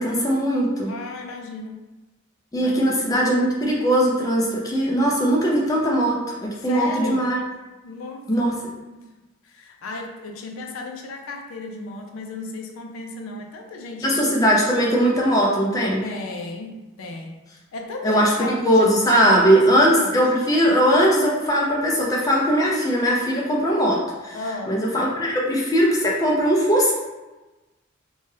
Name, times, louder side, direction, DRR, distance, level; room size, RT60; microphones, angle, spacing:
voice 1, 0.0-0.9 2.5-7.4 8.3-8.5 14.0-16.0 18.0-24.4 24.7-26.9, equal, 15° left, -3 dB, 0.4 m, -20 dB
voice 2, 0.9-1.8 2.6-3.2 6.7-7.3 7.8-8.5 8.9-9.0 9.4-14.2 16.0-17.3 17.7-20.2 24.3-24.8, left 3 dB, 80° left, 3 dB, 0.4 m, -34 dB
2.8 x 2.3 x 3.1 m, 1.1 s
head